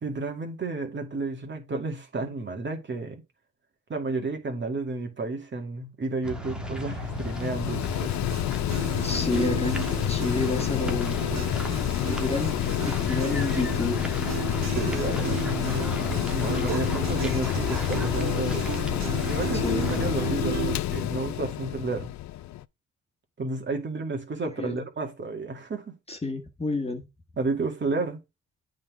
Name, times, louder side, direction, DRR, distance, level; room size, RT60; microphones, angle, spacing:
voice 1, 0.0-3.2 3.9-8.1 14.6-18.7 19.3-22.1 23.4-25.9 27.4-28.2, right 3 dB, 40° right, 2.1 m, -32 dB
sound 1, 6.2-20.3, right 2 dB, 5° right, 1.5 m, -36 dB
Mechanical fan, 6.4-22.6, left 15 dB, 70° left, 0.5 m, -29 dB
sound 2, 8.3-20.8, right 7 dB, 60° right, 1.7 m, -35 dB
voice 2, 9.0-11.5 12.0-12.5 12.8-14.0 19.5-20.6 24.6-24.8 26.1-27.0, left 3 dB, 20° left, 1.6 m, -30 dB
8.6 x 3.9 x 4.7 m
cardioid pair, 90°, 30 cm